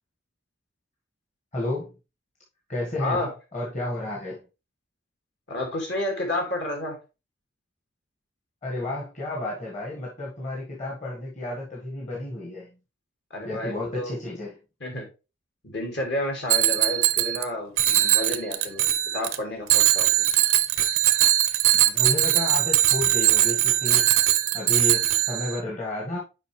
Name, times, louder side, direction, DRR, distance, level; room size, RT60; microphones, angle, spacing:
voice 1, 1.5-1.9 2.7-3.2 3.5-4.4 8.6-12.7 13.4-14.6 21.7-24.1 24.5-26.2, left 2 dB, 35° left, 1.7 m, -31 dB
voice 2, 5.5-7.0 13.3-14.2 14.8-15.1 15.7-18.9 19.1-20.2, left 1 dB, 55° left, 2.2 m, -30 dB
Bicycle bell, 16.5-17.5 17.8-19.4 19.7-25.6, right 13 dB, 85° right, 0.7 m, -21 dB
6.7 x 5.1 x 3.2 m
head